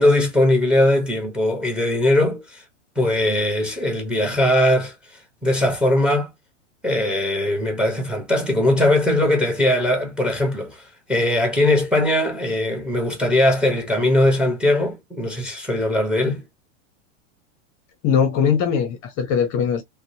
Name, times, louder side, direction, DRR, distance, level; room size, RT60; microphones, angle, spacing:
voice 1, 0.0-2.6 3.0-4.9 5.4-6.3 6.8-10.8 11.1-16.4, left 1 dB, 5° right, 0.7 m, -20 dB
voice 2, 18.0-19.8, left 7 dB, 35° left, 0.6 m, -20 dB
2.6 x 2.0 x 2.6 m
supercardioid pair, 130°, 38 cm